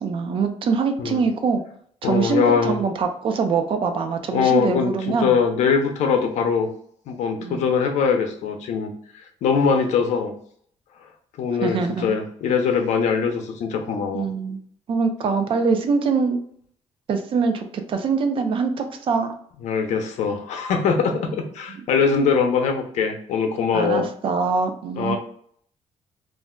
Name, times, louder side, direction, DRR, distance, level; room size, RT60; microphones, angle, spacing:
voice 1, 0.0-1.6 2.0-5.4 7.4-7.7 11.6-12.2 14.1-14.6 14.9-16.4 17.1-19.3 21.7-21.9 23.7-25.2, right 5 dB, 50° right, 7 dB, 0.5 m, -23 dB
voice 2, 2.0-2.8 4.3-6.7 7.1-10.3 11.4-14.2 19.6-24.0 25.0-25.2, left 6 dB, 85° left, 5 dB, 0.6 m, -22 dB
2.5 x 2.1 x 3.6 m, 0.62 s
cardioid pair, 150°, 12 cm